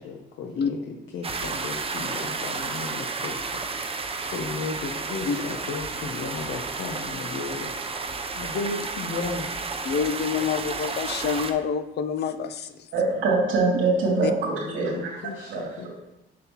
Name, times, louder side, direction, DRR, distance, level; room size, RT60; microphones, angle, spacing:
voice 1, 0.0-3.4 3.8-9.5 14.5-15.9, left 4 dB, 85° left, 1 dB, 0.8 m, -35 dB
sound 1, 1.2-11.5, right 4 dB, 30° right, 0.7 m, -32 dB
voice 2, 9.8-12.9 14.2-14.3, left 7 dB, 60° left, 10 dB, 0.5 m, -27 dB
voice 3, 12.9-15.2 15.5-15.9, right 3 dB, 85° right, -2 dB, 2.6 m, -24 dB
7.4 x 5.7 x 3.0 m, 0.94 s
cardioid pair, 90°, 20 cm